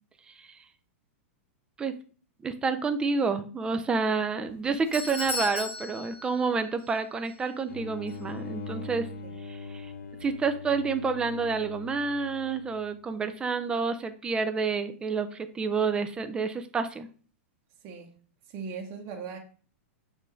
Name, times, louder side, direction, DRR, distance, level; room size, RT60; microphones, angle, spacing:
voice 1, 2.4-9.1 9.5-9.9 10.2-17.1, right 4 dB, 10° right, 0.4 m, -29 dB
Doorbell, 4.4-7.0 7.2-7.3 8.1-8.2, left 3 dB, 35° left, 2.6 m, -36 dB
sound 1, 7.7-13.1, left 4 dB, 80° left, 0.8 m, -41 dB
voice 2, 18.5-19.4, right 5 dB, 35° right, 0.9 m, -38 dB
6.6 x 2.6 x 3.1 m
hypercardioid pair, 140°, 7 cm